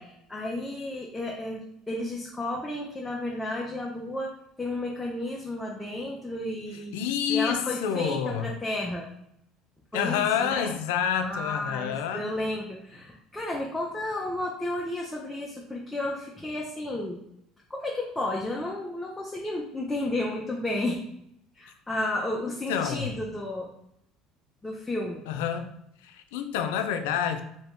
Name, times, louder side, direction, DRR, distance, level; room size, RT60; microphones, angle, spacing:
voice 1, 0.0-1.6 1.9-4.3 4.6-7.0 7.3-9.1 9.9-10.7 11.1-17.2 17.7-21.0 21.5-23.7 24.6-25.2, left 1 dB, 10° left, -2 dB, 0.6 m, -32 dB
voice 2, 6.9-8.6 9.9-12.3 22.7-23.1 25.3-25.7 26.0-27.4, left 8 dB, 85° left, 7 dB, 0.4 m, -28 dB
2.8 x 2.8 x 3.5 m, 0.76 s
supercardioid pair, 90°, 0 cm